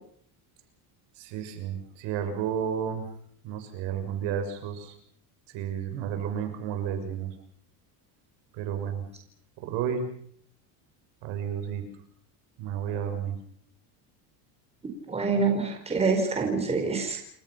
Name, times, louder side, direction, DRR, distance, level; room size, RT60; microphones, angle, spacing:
voice 1, 1.2-3.1 3.4-4.9 5.5-7.3 8.5-9.0 9.6-10.1 11.2-11.8 12.6-13.4, right 8 dB, 60° right, 6 dB, 6.6 m, -31 dB
voice 2, 15.1-17.2, right 4 dB, 10° right, 2 dB, 4.8 m, -26 dB
29.5 x 26.5 x 5.8 m, 0.62 s
cardioid pair, 175°, 49 cm